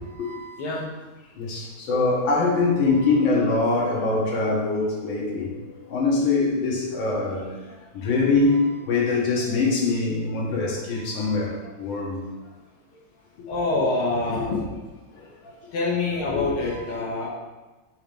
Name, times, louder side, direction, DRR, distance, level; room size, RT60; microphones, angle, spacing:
voice 1, 0.2-0.6 1.4-5.6 5.9-7.5 7.9-12.2 14.5-14.6 16.7-16.8, left 3 dB, 65° left, -4 dB, 1.9 m, -23 dB
voice 2, 5.0-5.9 13.5-14.7 15.7-17.3, left 3 dB, 80° left, -4 dB, 1.8 m, -26 dB
6.3 x 3.0 x 5.1 m, 1.2 s
omnidirectional pair, 2.4 m